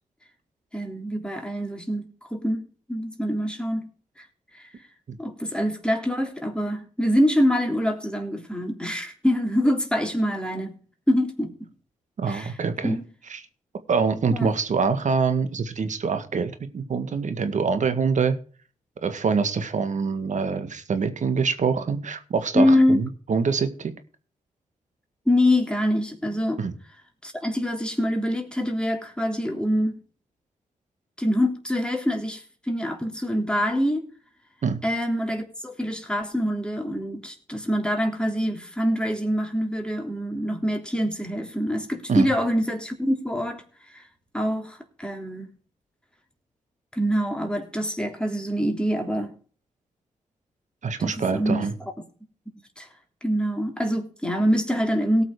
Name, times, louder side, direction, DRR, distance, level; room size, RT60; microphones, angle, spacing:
voice 1, 0.7-2.6 2.9-3.8 4.2-4.3 4.5-4.7 5.2-10.7 11.1-11.5 12.3-12.5 12.8-13.0 14.3-14.5 22.5-23.0 25.2-26.6 27.2-29.9 31.2-34.0 34.8-43.6 43.9-44.0 44.3-45.5 46.9-49.3 51.0-51.6 52.8-52.9 53.2-55.2, equal, 5° left, 2 dB, 3.4 m, -25 dB
voice 2, 12.2-12.9 13.3-13.4 13.9-18.4 19.0-23.9 26.6-26.7 34.6-34.8 42.1-42.3 50.8-51.7, right 5 dB, 60° right, 10 dB, 1.7 m, -25 dB
17.5 x 6.1 x 4.9 m, 0.41 s
supercardioid pair, 50°, 14 cm